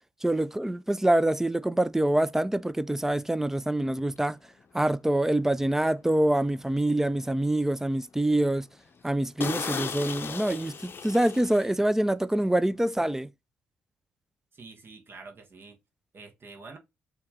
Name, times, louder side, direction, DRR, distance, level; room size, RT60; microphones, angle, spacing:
voice 1, 0.2-4.4 4.7-8.7 9.0-13.3, right 1 dB, 10° right, 0.4 m, -25 dB
sound 1, 4.1-4.3 4.8-5.0 5.5-5.6 6.0-6.1 6.6-7.2 7.6-7.7 8.1-8.2 8.5-8.6 9.0-9.1 9.4-11.9 12.2-12.4, left 6 dB, 45° left, 0.6 m, -36 dB
voice 2, 14.5-15.8 16.1-16.8, right 4 dB, 45° right, 1.3 m, -47 dB
4.3 x 2.9 x 3.6 m
supercardioid pair, 55°, 5 cm